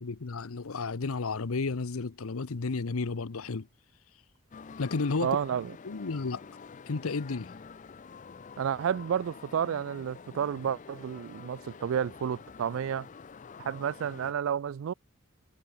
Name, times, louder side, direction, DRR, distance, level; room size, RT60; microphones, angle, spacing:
voice 1, 0.0-3.7 4.8-5.3 5.8-6.4 6.9-7.5, left 4 dB, 80° left, 0.8 m, -32 dB
sound 1, 4.5-14.3, left 5 dB, 35° left, 0.4 m, -48 dB
voice 2, 5.2-5.7 8.6-13.1 13.6-14.9, right 8 dB, 65° right, 0.3 m, -31 dB
head